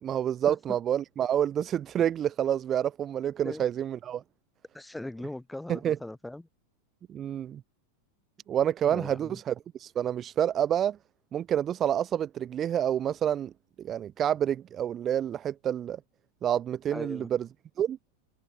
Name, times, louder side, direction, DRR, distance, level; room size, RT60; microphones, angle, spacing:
voice 1, 0.0-4.2 5.7-6.0 7.1-7.6 8.5-11.0 11.3-13.5 13.8-16.0 16.4-17.5 17.8-18.0, right 10 dB, 25° right, 1.1 m, -28 dB
voice 2, 4.7-6.4 8.9-9.4 16.9-17.3, left 1 dB, 5° left, 6.3 m, -39 dB
figure-of-eight pair, 90°, 0 cm